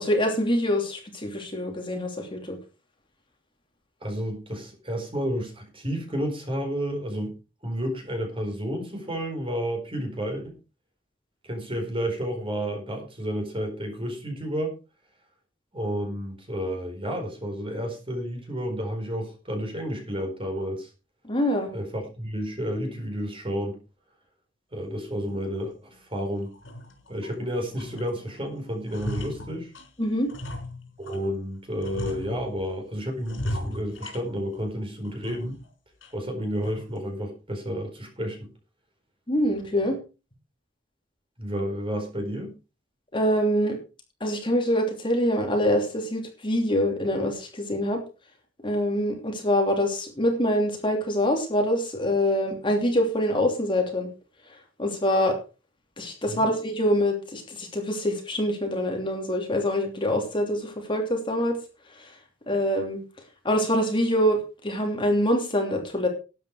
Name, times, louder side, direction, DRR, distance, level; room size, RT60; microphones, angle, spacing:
voice 1, 0.0-2.6 21.3-21.7 30.0-30.3 39.3-40.0 43.1-43.8 44.2-48.0 48.6-54.1 54.8-55.4 56.0-61.6 62.5-63.0 63.4-64.4 64.6-66.1, equal, 25° left, 2 dB, 2.9 m, -25 dB
voice 2, 4.0-7.4 7.6-10.5 11.4-14.7 15.7-20.9 21.7-23.8 24.7-26.5 27.1-29.7 31.0-35.6 36.1-38.5 41.4-42.5 56.3-56.4, equal, 30° right, 3 dB, 4.5 m, -31 dB
sound 1, 25.3-25.4 25.9-26.0 26.5-27.4 27.7-28.4 28.7-31.3 31.8-32.7 33.2-34.7 35.0-35.7 36.0-36.1 36.6-37.0, equal, 85° left, 4.5 m, -37 dB
12.5 x 9.6 x 4.8 m, 0.32 s
head